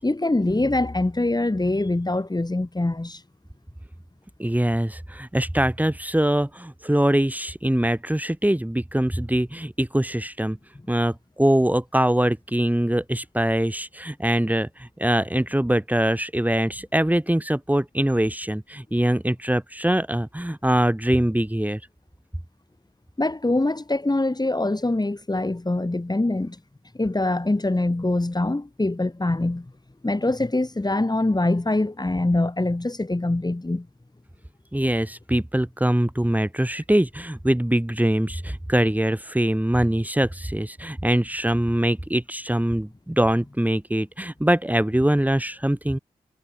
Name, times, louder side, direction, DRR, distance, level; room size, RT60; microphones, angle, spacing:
voice 1, 0.0-3.2 23.2-26.6 26.9-29.7 30.0-33.9, left 2 dB, 25° left, 4.9 m, -24 dB
voice 2, 4.4-10.6 10.9-21.8 34.7-46.0, right 1 dB, 10° right, 4.2 m, -23 dB
supercardioid pair, 40°, 17 cm